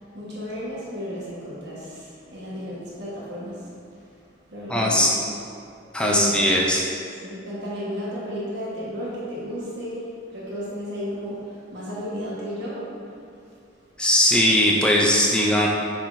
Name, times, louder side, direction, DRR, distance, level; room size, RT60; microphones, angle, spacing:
voice 1, 0.0-4.2 4.5-5.2 6.0-6.6 7.2-13.2 13.4-13.5, equal, 65° right, -7 dB, 1.4 m, -33 dB
voice 2, 4.7-5.1 5.9-6.8 14.0-15.7, left 1 dB, 5° left, -3 dB, 0.4 m, -19 dB
6.6 x 5.7 x 2.6 m, 2.4 s
head